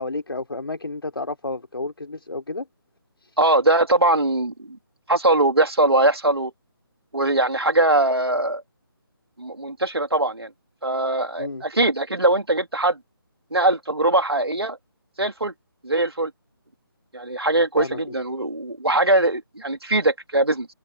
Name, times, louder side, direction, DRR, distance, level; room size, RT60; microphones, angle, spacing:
voice 1, 0.0-2.7 11.4-11.6 17.8-18.1, left 2 dB, 70° left, 4.9 m, -31 dB
voice 2, 3.4-4.8 5.1-6.5 7.1-8.6 9.4-10.5 10.8-13.0 13.5-14.8 15.2-15.5 15.8-16.3 17.1-20.7, right 2 dB, 80° right, 3.3 m, -21 dB
figure-of-eight pair, 155°, 13 cm